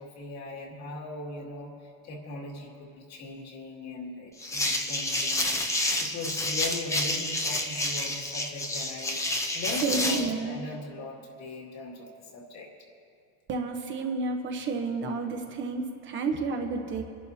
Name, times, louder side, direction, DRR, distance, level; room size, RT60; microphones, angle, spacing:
voice 1, 0.0-12.7, left 2 dB, 50° left, -1 dB, 2.3 m, -39 dB
sound 1, 4.4-10.3, left 1 dB, 10° left, 0.6 m, -29 dB
voice 2, 9.8-10.6 13.5-17.0, right 4 dB, 35° right, 4 dB, 0.9 m, -30 dB
25.5 x 11.0 x 2.7 m, 2.3 s
cardioid pair, 170°, 35 cm